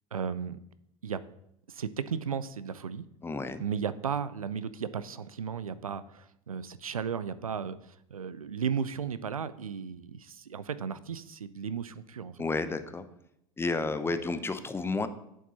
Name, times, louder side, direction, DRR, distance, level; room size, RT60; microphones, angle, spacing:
voice 1, 0.1-0.6 1.0-1.2 1.7-3.1 3.6-12.4, right 7 dB, 85° right, 15 dB, 0.4 m, -35 dB
voice 2, 3.2-3.6 12.4-13.0 13.6-15.1, left 3 dB, 15° left, 11 dB, 0.7 m, -31 dB
8.4 x 7.2 x 4.1 m, 0.79 s
figure-of-eight pair, 75°, 18 cm